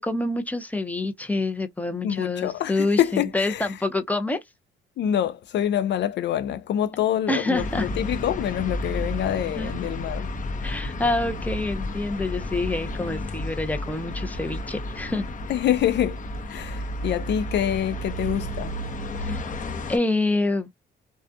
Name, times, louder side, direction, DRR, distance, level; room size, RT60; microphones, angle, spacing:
voice 1, 0.0-4.4 7.3-7.9 9.6-9.7 10.6-15.2 19.2-19.4 19.9-20.7, left 2 dB, 10° left, 0.6 m, -27 dB
voice 2, 2.0-3.8 5.0-10.3 15.5-18.8, left 10 dB, 65° left, 0.4 m, -26 dB
sound 1, 7.5-20.0, left 1 dB, 40° left, 0.8 m, -32 dB
2.4 x 2.2 x 2.6 m
cardioid pair, 90°, 20 cm